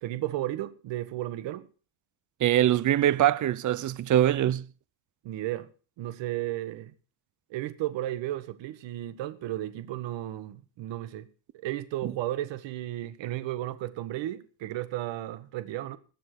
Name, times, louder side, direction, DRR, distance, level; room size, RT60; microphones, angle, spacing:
voice 1, 0.0-1.7 5.2-5.7 6.0-6.9 7.5-11.3 11.6-16.0, right 14 dB, 65° right, 1.7 m, -34 dB
voice 2, 2.4-4.6, right 12 dB, 40° right, 0.8 m, -23 dB
20.5 x 7.7 x 6.1 m
cardioid pair, 130°, 48 cm